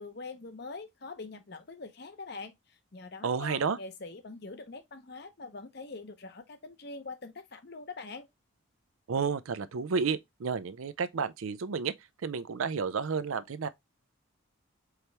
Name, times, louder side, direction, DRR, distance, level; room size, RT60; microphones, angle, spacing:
voice 1, 0.0-8.3, left 3 dB, 50° left, 0.7 m, -44 dB
voice 2, 3.2-3.8 9.1-11.9 12.2-13.7, right 5 dB, 80° right, 0.5 m, -31 dB
4.8 x 3.0 x 3.3 m
head